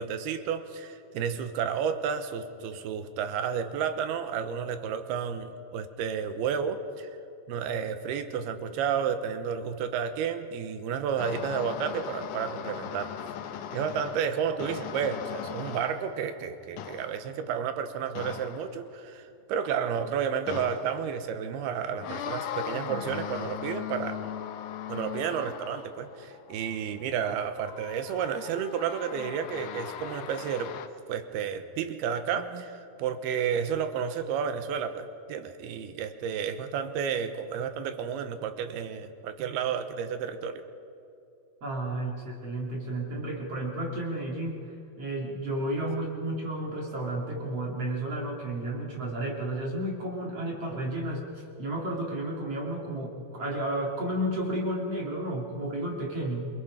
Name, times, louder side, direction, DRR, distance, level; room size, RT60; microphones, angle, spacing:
voice 1, 0.0-7.1 7.5-13.1 13.7-24.2 24.9-30.8 31.1-40.6, right 7 dB, 75° right, 9 dB, 2.8 m, -31 dB
sound 1, 11.2-16.3 16.8-17.3 18.2-18.9 20.5-21.2 22.0-27.2 27.5-30.9, left 9 dB, 85° left, 1.7 m, -39 dB
voice 2, 41.6-51.3 51.6-56.5, right 1 dB, 40° right, -1 dB, 3.0 m, -32 dB
28.0 x 21.5 x 5.1 m, 2.7 s
omnidirectional pair, 4.9 m